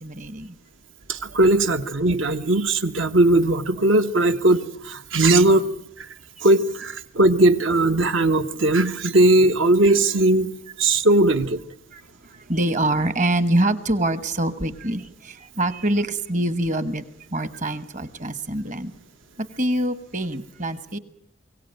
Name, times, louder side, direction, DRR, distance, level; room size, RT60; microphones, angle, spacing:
voice 1, 0.0-0.6 11.9-12.0 12.5-17.0 17.3-18.9 19.4-21.0, right 1 dB, 40° right, 13 dB, 1.2 m, -25 dB
voice 2, 1.1-5.7 6.4-10.5 10.8-11.6, right 2 dB, 75° right, 9 dB, 1.3 m, -18 dB
23.0 x 17.5 x 9.1 m, 0.74 s
head